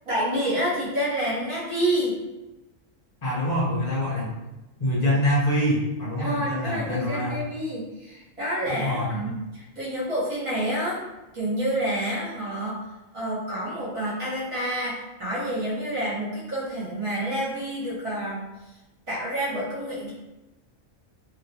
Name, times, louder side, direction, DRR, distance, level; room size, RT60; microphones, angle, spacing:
voice 1, 0.0-2.2 6.2-11.0 11.3-12.8 13.1-18.7 19.1-20.1, right 1 dB, 25° right, -9 dB, 1.2 m, -28 dB
voice 2, 3.2-4.3 4.8-7.4 8.7-9.3, left 1 dB, 35° left, -6 dB, 0.9 m, -25 dB
3.0 x 2.9 x 2.8 m, 1.0 s
omnidirectional pair, 1.4 m